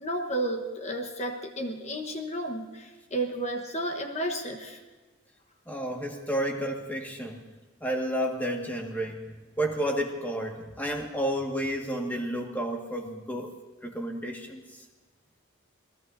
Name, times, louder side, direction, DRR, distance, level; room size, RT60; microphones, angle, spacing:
voice 1, 0.0-4.8, right 1 dB, 30° left, 3 dB, 1.2 m, -32 dB
voice 2, 5.7-7.4 7.8-13.5 13.8-14.8, equal, 10° left, 1 dB, 1.7 m, -31 dB
28.0 x 19.5 x 2.7 m, 1.3 s
head